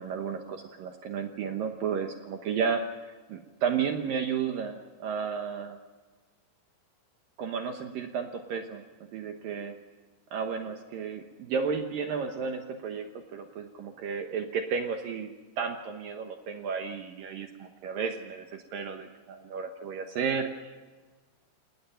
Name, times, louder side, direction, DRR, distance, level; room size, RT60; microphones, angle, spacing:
voice 1, 0.0-2.8 3.3-5.8 7.4-8.8 9.1-9.8 10.3-15.3 15.6-20.8, right 6 dB, 65° right, 5 dB, 2.3 m, -33 dB
29.0 x 19.0 x 5.7 m, 1.4 s
omnidirectional pair, 5.2 m